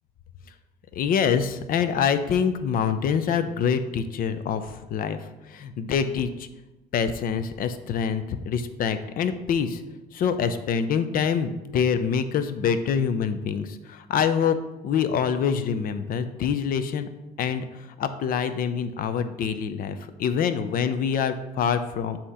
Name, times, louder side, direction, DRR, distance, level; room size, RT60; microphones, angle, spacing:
voice 1, 1.0-5.2 5.5-6.5 6.9-9.8 10.1-14.6 14.8-17.1 17.4-17.7 18.0-22.2, left 7 dB, 60° left, 11 dB, 0.5 m, -25 dB
7.7 x 2.9 x 4.8 m, 1.0 s
cardioid pair, 110°, 17 cm